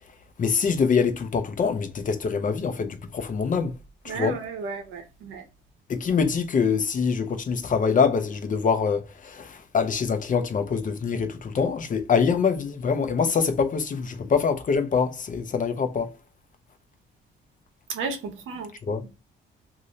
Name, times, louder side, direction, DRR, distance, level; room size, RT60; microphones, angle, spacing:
voice 1, 0.4-3.8 4.0-4.4 5.9-16.1 18.9-19.0, left 5 dB, 40° left, 0.7 m, -24 dB
voice 2, 4.1-5.4 17.9-18.7, right 4 dB, 90° right, 0.9 m, -33 dB
2.7 x 2.6 x 3.1 m
cardioid pair, 90°, 20 cm